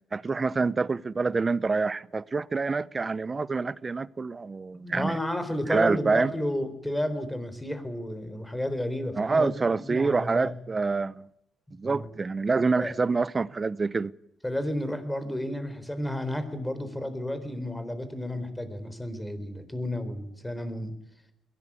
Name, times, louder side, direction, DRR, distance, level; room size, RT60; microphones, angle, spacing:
voice 1, 0.1-5.2 5.7-6.3 9.2-11.3 11.7-14.1, right 4 dB, 30° right, 0.7 m, -26 dB
voice 2, 4.7-10.5 11.8-12.2 12.8-12.9 14.4-21.0, left 1 dB, 10° left, 4.1 m, -32 dB
22.0 x 17.5 x 8.5 m
cardioid pair, 90°, 0 cm